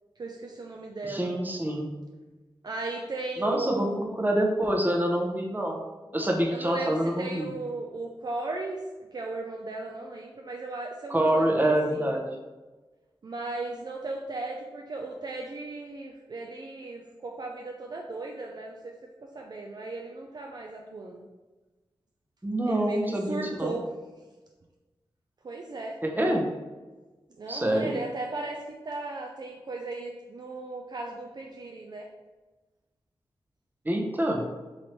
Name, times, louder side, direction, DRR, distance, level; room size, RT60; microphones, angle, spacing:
voice 1, 0.2-1.3 2.6-4.1 6.5-8.8 9.1-12.1 13.2-18.9 19.3-21.3 22.6-23.0 23.3-23.9 25.4-26.0 27.4-32.1, right 2 dB, 45° right, 1 dB, 0.4 m, -36 dB
voice 2, 1.0-1.9 3.4-5.8 6.1-7.5 11.1-12.2 22.4-23.8 26.0-26.5 27.5-28.0 33.8-34.5, right 1 dB, 20° right, 1 dB, 0.7 m, -26 dB
3.2 x 2.6 x 4.3 m, 1.2 s
cardioid pair, 50°, 9 cm